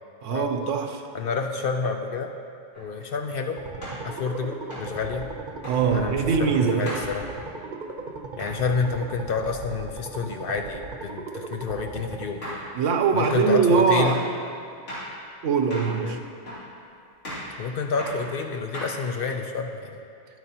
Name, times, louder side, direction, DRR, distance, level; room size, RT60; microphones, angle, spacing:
voice 1, 0.2-1.0 5.7-6.9 12.7-14.2 15.4-16.2, right 5 dB, 85° right, 5 dB, 1.1 m, -22 dB
voice 2, 1.1-2.3 2.8-3.6 4.0-5.3 5.9-7.3 8.4-12.4 13.1-14.2 16.0-16.2 17.6-20.0, left 5 dB, 60° left, 4 dB, 0.6 m, -29 dB
sound 1, 2.7-2.9 3.8-4.1 4.7-4.9 5.6-5.8 6.9-7.1 8.4-8.6 11.7-11.8 12.4-12.7 13.2-13.4 14.1-14.3 14.9-15.1 15.7-16.0 16.5-16.7 17.2-17.5 18.0-18.2 18.7-19.2, equal, 80° left, 3.0 m, -36 dB
sound 2, 3.6-12.3, right 4 dB, 45° right, 0.9 m, -37 dB
11.5 x 9.1 x 2.9 m, 2.4 s
omnidirectional pair, 1.2 m